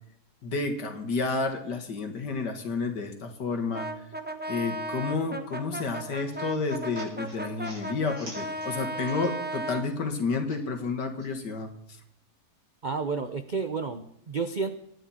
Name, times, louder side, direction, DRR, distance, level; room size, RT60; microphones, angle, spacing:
voice 1, 0.4-4.1 4.5-11.7, left 4 dB, 75° left, 6 dB, 2.3 m, -30 dB
Brass instrument, 3.7-9.9, right 1 dB, 10° right, 0.6 m, -35 dB
sound 1, 6.0-9.6 9.9-11.3, right 1 dB, 80° right, 6.1 m, -49 dB
voice 2, 12.8-14.8, right 4 dB, 55° right, 9 dB, 0.5 m, -31 dB
23.5 x 9.7 x 4.3 m, 0.73 s
omnidirectional pair, 1.8 m